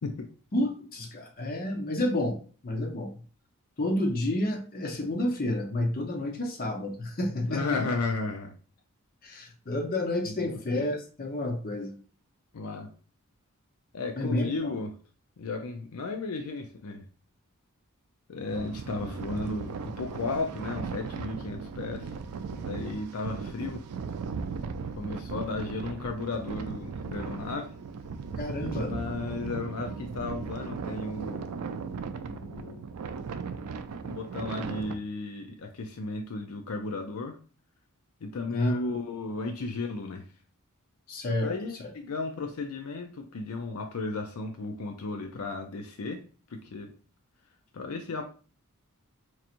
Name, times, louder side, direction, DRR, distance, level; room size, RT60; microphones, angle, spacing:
voice 1, 0.5-2.4 2.6-3.1 3.8-7.8 9.2-12.0 14.2-14.7 28.4-28.9 38.5-38.8 41.1-41.5 41.8-41.9, left 1 dB, 40° left, 3 dB, 0.8 m, -30 dB
voice 2, 7.5-8.6 10.3-10.6 12.5-12.9 13.9-15.0 15.4-17.1 18.3-22.1 22.5-23.8 25.0-27.8 28.8-31.4 32.2-32.8 34.0-37.4 38.2-40.3 41.4-46.2 46.5-46.9 47.7-48.2, left 3 dB, 75° left, 4 dB, 0.5 m, -34 dB
sound 1, 18.5-34.9, right 5 dB, 85° right, 0.4 m, -37 dB
4.6 x 2.9 x 2.5 m, 0.39 s
head